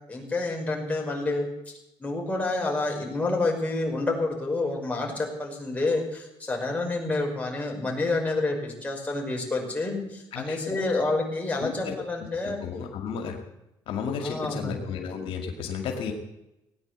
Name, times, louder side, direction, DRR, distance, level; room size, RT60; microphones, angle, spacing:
voice 1, 0.1-1.5 2.0-12.6 14.2-14.8, left 2 dB, 15° left, 0 dB, 5.7 m, -28 dB
voice 2, 10.3-10.9 11.6-12.0 12.4-13.4 13.9-16.1, left 6 dB, 75° left, 3 dB, 2.3 m, -33 dB
18.0 x 9.9 x 8.1 m, 0.90 s
cardioid pair, 100°, 9 cm